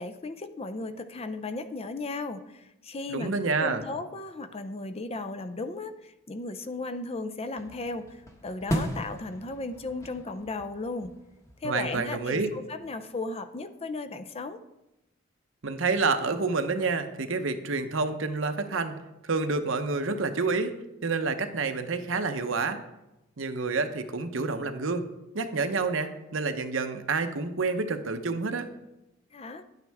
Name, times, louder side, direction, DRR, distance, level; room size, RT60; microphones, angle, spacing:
voice 1, 0.0-3.3 3.6-8.2 8.4-11.1 11.6-14.6 29.3-29.7, left 2 dB, 30° left, 10 dB, 0.5 m, -35 dB
voice 2, 3.1-3.8 11.6-12.5 15.6-19.0 19.2-20.7 21.0-22.8 23.4-25.1 25.3-28.7, right 4 dB, 70° right, 7 dB, 0.8 m, -28 dB
sound 1, 7.6-12.9, equal, 15° left, 1.1 m, -37 dB
10.5 x 9.1 x 3.5 m, 0.92 s
head